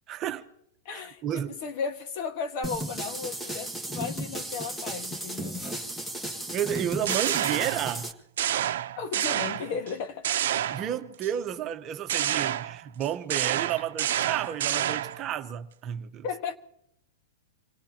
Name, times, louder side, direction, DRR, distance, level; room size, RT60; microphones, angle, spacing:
voice 1, 0.1-0.5 0.9-1.6 6.5-8.1 10.7-16.2, right 10 dB, 35° right, 1.0 m, -32 dB
voice 2, 0.8-5.6 9.0-10.4 16.2-16.6, left 5 dB, 50° left, 1.6 m, -35 dB
sound 1, 2.6-8.1, right 1 dB, 5° left, 1.5 m, -35 dB
sound 2, 6.8-8.0 8.4-9.9 10.2-11.3 12.1-15.3, right 11 dB, 75° right, 0.7 m, -29 dB
27.5 x 18.0 x 2.9 m
hypercardioid pair, 135°, 0 cm